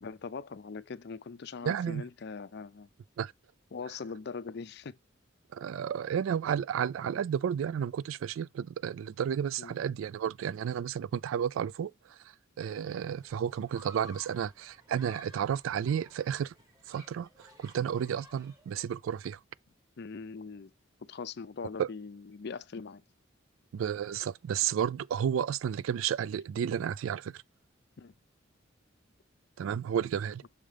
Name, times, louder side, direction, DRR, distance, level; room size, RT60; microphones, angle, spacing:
voice 1, 0.0-2.9 3.7-4.9 9.6-9.8 20.0-20.7 21.0-23.0 28.0-28.1, left 5 dB, 55° left, 0.5 m, -41 dB
voice 2, 1.6-2.0 3.2-3.3 5.5-12.2 12.6-16.5 16.9-19.4 21.8-21.9 23.7-27.4 29.6-30.4, right 8 dB, 85° right, 0.3 m, -32 dB
Human group actions, 12.6-19.2, equal, 20° right, 1.1 m, -56 dB
6.5 x 5.0 x 3.3 m
head